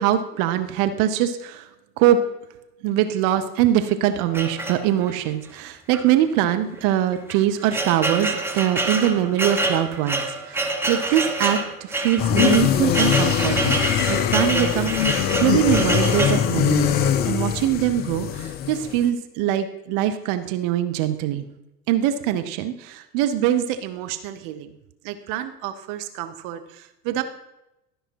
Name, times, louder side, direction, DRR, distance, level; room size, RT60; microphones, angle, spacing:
voice 1, 0.0-1.7 2.0-2.2 2.8-17.0 17.2-21.4 21.9-24.7 25.0-27.2, right 11 dB, 40° right, 9 dB, 0.8 m, -23 dB
sound 1, 4.3-5.2 5.9-6.1 6.3-6.4 7.1-16.5, right 2 dB, 5° right, 1.1 m, -26 dB
sound 2, 12.2-19.1, left 9 dB, 20° left, 0.4 m, -22 dB
12.5 x 5.4 x 5.8 m, 0.90 s
figure-of-eight pair, 80°, 49 cm